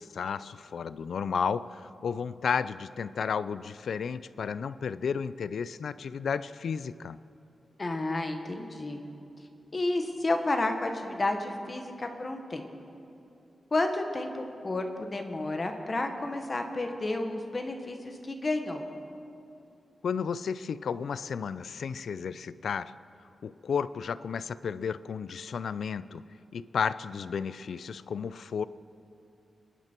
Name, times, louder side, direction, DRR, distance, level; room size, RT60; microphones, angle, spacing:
voice 1, 0.0-7.2 20.0-22.9 23.4-26.2 26.5-28.6, left 6 dB, 80° left, 16 dB, 0.4 m, -33 dB
voice 2, 7.8-9.0 9.7-12.7 13.7-18.9, left 2 dB, 30° left, 4 dB, 1.3 m, -31 dB
26.5 x 11.0 x 4.5 m, 2.7 s
wide cardioid pair, 170°, 0 cm